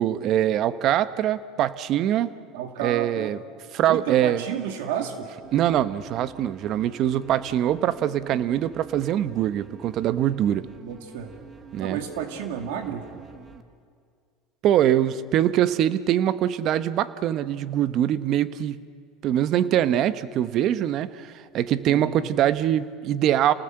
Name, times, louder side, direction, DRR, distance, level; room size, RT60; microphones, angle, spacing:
voice 1, 0.0-2.3 2.8-3.4 3.7-4.4 5.5-10.6 11.7-12.0 14.6-18.8 19.2-23.5, right 11 dB, 50° right, 14 dB, 0.9 m, -23 dB
voice 2, 2.5-3.3 3.9-5.3 10.8-11.4 11.8-13.1 21.9-22.2, right 8 dB, 80° right, 5 dB, 2.3 m, -31 dB
sound 1, 5.4-13.6, right 4 dB, 30° right, 1.8 m, -47 dB
28.0 x 18.5 x 7.8 m, 2.1 s
supercardioid pair, 110°, 0 cm